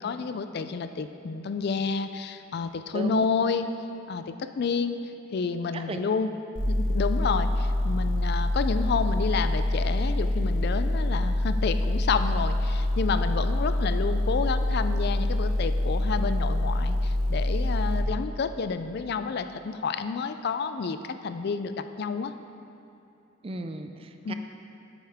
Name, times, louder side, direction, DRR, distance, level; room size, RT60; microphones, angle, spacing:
voice 1, 0.0-3.7 4.1-5.0 5.3-6.3 6.7-22.3 24.2-24.3, left 5 dB, 55° left, 10 dB, 0.4 m, -30 dB
voice 2, 2.9-3.2 5.7-6.0 23.4-24.3, right 2 dB, 30° right, 7 dB, 0.4 m, -35 dB
sound 1, 6.6-18.0, left 1 dB, 65° right, 1.4 m, -26 dB
9.2 x 8.0 x 3.6 m, 2.9 s
head